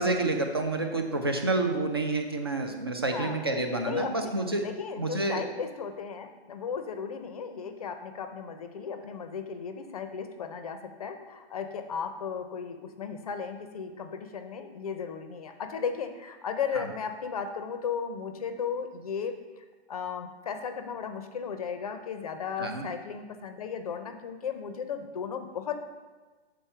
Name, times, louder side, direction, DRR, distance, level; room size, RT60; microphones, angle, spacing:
voice 1, 0.0-4.7 5.0-5.4 16.8-16.9 22.6-22.9, right 2 dB, 25° right, 4 dB, 0.3 m, -29 dB
voice 2, 3.1-3.5 3.8-4.3 4.6-19.4 19.9-25.8, left 6 dB, 35° left, 8 dB, 0.5 m, -35 dB
7.4 x 4.2 x 5.5 m, 1.3 s
hypercardioid pair, 165°, 33 cm